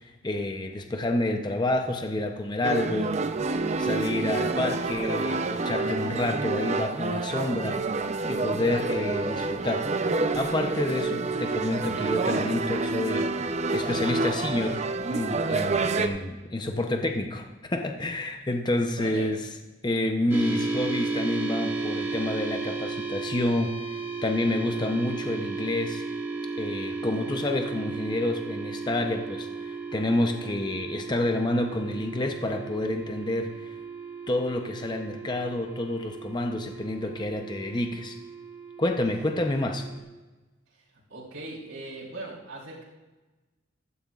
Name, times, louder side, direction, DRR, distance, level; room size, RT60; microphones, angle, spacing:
voice 1, 0.0-3.1 3.8-7.8 8.3-9.9 10.3-14.8 15.1-19.4 19.8-26.0 26.6-33.8 34.3-38.2 38.8-39.8, left 1 dB, 20° left, 4 dB, 0.7 m, -29 dB
sound 1, 2.6-16.1, right 3 dB, 35° right, 0.5 m, -28 dB
voice 2, 19.0-19.3 40.7-40.8 41.1-42.8, right 2 dB, 90° right, -7 dB, 4.0 m, -39 dB
sound 2, 20.3-40.0, right 4 dB, 10° right, 1.3 m, -35 dB
15.5 x 13.0 x 2.4 m, 1.2 s
head